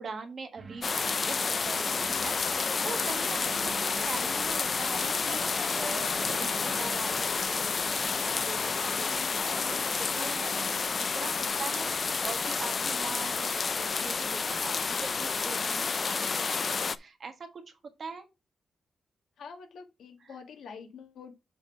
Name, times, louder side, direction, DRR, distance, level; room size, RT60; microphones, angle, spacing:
voice 1, 0.0-18.2 20.2-20.4, right 4 dB, 50° right, 1.5 m, -43 dB
sound 1, 0.5-12.3 12.7-12.8, right 4 dB, 35° right, 1.1 m, -49 dB
sound 2, 0.8-17.0, left 5 dB, 40° left, 0.4 m, -30 dB
sound 3, 3.1-15.5, left 3 dB, 25° left, 1.0 m, -54 dB
voice 2, 19.4-21.4, left 5 dB, 90° left, 1.6 m, -46 dB
6.9 x 3.7 x 5.8 m
wide cardioid pair, 135°, 0 cm